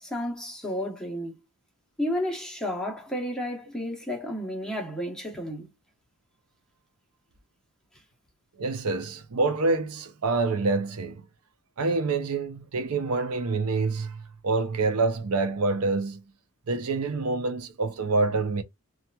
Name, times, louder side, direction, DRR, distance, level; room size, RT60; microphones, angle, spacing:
voice 1, 0.0-1.4 2.0-5.7, equal, 5° left, 0.9 m, -32 dB
voice 2, 8.6-11.2 11.8-16.2 16.7-18.6, right 3 dB, 90° right, 0.6 m, -26 dB
2.8 x 2.4 x 2.2 m
head